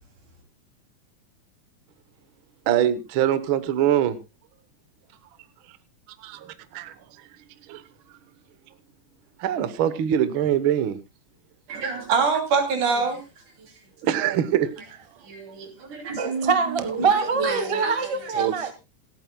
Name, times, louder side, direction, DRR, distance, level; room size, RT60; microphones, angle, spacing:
voice 1, 2.7-4.2 6.2-6.9 7.7-7.8 9.4-11.0 11.7-12.1 14.0-14.7 18.4-18.5, right 10 dB, 60° right, 13 dB, 1.5 m, -23 dB
voice 2, 11.7-13.2 15.3-16.5 16.8-18.0 18.4-18.5, right 5 dB, 85° right, 4 dB, 4.5 m, -26 dB
voice 3, 16.1-18.7, right 5 dB, 35° right, 9 dB, 0.5 m, -24 dB
28.0 x 9.3 x 2.3 m, 0.26 s
omnidirectional pair, 3.4 m